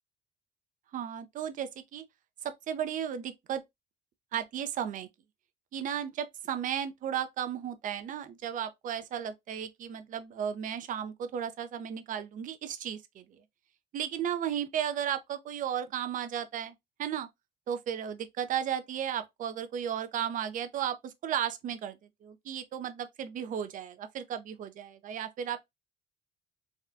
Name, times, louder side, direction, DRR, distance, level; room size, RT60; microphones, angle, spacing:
voice 1, 0.9-2.0 2.4-3.6 4.3-5.1 5.7-13.4 13.9-17.3 17.7-25.7, right 9 dB, 50° right, 0.5 m, -34 dB
3.5 x 2.2 x 2.5 m
cardioid pair, 110°, 17 cm